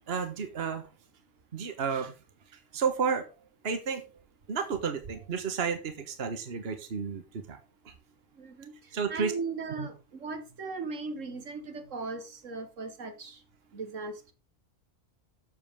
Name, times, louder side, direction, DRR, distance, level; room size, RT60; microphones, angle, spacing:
voice 1, 0.1-0.9 1.5-2.1 2.7-3.3 3.6-4.0 4.5-7.6 7.8-7.9 8.9-9.3 9.8-9.9, right 6 dB, 50° right, 1.5 m, -31 dB
voice 2, 8.4-8.8 9.1-13.4 13.7-14.3, right 4 dB, 70° right, 1.7 m, -38 dB
12.5 x 7.8 x 3.6 m
omnidirectional pair, 1.3 m